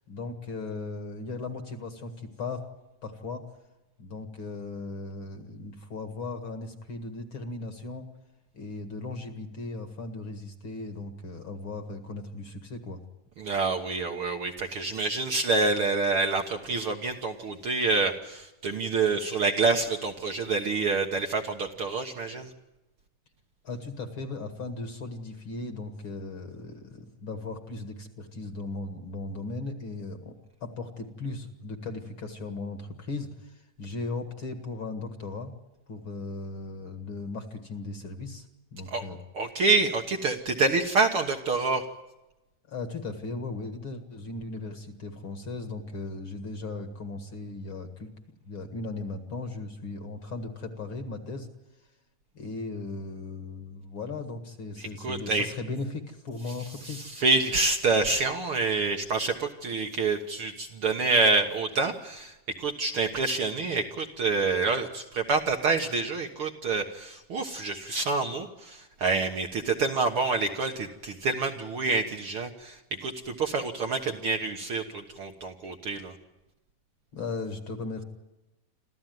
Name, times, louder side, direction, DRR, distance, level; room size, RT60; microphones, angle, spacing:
voice 1, 0.1-2.7 3.0-3.5 4.0-8.1 8.5-13.0 23.6-35.5 35.9-38.5 38.7-39.2 42.7-48.1 48.5-51.5 52.3-57.1 77.1-78.0, left 3 dB, 45° left, 8 dB, 2.3 m, -37 dB
voice 2, 13.4-22.5 38.9-39.0 39.3-41.9 54.8-55.5 56.8-76.1, right 3 dB, 55° right, 3 dB, 1.8 m, -27 dB
27.0 x 14.5 x 9.3 m, 1.0 s
omnidirectional pair, 3.6 m